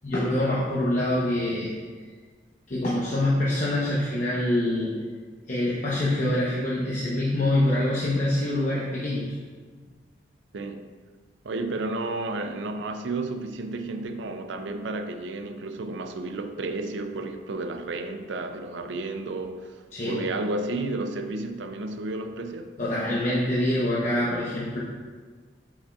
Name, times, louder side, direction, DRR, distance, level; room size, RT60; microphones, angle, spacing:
voice 1, 0.0-1.7 2.7-4.9 5.5-9.3 19.9-20.2 22.8-24.8, left 1 dB, 45° left, -7 dB, 0.8 m, -25 dB
voice 2, 10.5-10.9 11.4-19.7 20.0-22.7, right 2 dB, 85° right, 7 dB, 0.5 m, -32 dB
8.3 x 5.3 x 2.4 m, 1.5 s
head